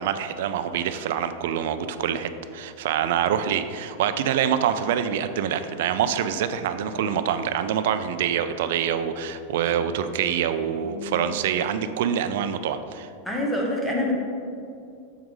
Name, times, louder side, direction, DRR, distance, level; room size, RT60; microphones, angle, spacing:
voice 1, 0.0-13.1, right 8 dB, 60° right, 10 dB, 0.3 m, -25 dB
voice 2, 10.8-11.3 13.3-14.1, left 1 dB, 5° left, -2 dB, 0.8 m, -27 dB
6.3 x 4.6 x 3.7 m, 2.5 s
supercardioid pair, 165°, 0 cm